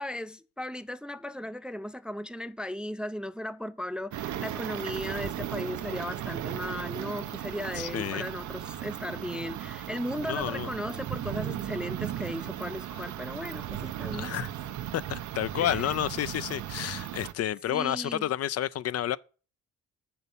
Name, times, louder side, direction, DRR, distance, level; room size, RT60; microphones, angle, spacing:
voice 1, 0.0-14.3 15.5-15.9 17.7-18.3, left 1 dB, 5° right, 0.4 m, -36 dB
sound 1, 4.1-17.3, right 11 dB, 75° right, 0.8 m, -36 dB
voice 2, 7.8-8.2 10.3-10.7 14.1-14.5 14.9-19.2, left 11 dB, 55° left, 0.5 m, -30 dB
8.0 x 6.0 x 5.5 m
cardioid pair, 90°, 30 cm